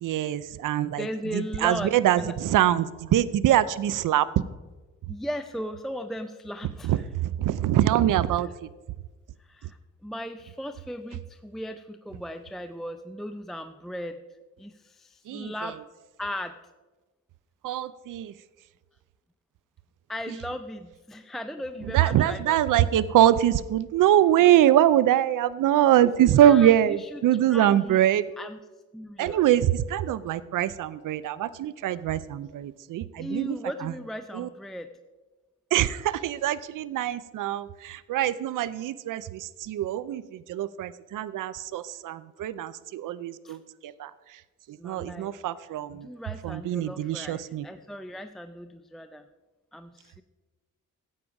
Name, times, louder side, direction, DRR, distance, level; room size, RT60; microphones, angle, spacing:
voice 1, 0.0-1.1 1.3-4.3 6.8-8.7 15.3-15.5 17.6-18.3 21.9-28.3 29.2-33.6 33.8-33.9 34.3-34.5 35.7-44.4 44.7-46.1 46.4-47.7, right 12 dB, 80° right, 17 dB, 0.5 m, -24 dB
voice 2, 0.8-2.3 5.1-7.0 8.4-8.5 9.4-14.2 14.6-15.8 16.2-16.6 20.1-22.6 26.0-27.2 27.5-28.1 28.4-28.6 28.9-29.5 33.2-34.9 43.4-43.6 44.8-45.3 45.9-49.3 49.7-50.2, equal, ahead, 8 dB, 0.5 m, -37 dB
14.0 x 8.7 x 4.7 m, 1.2 s
cardioid pair, 90°, 32 cm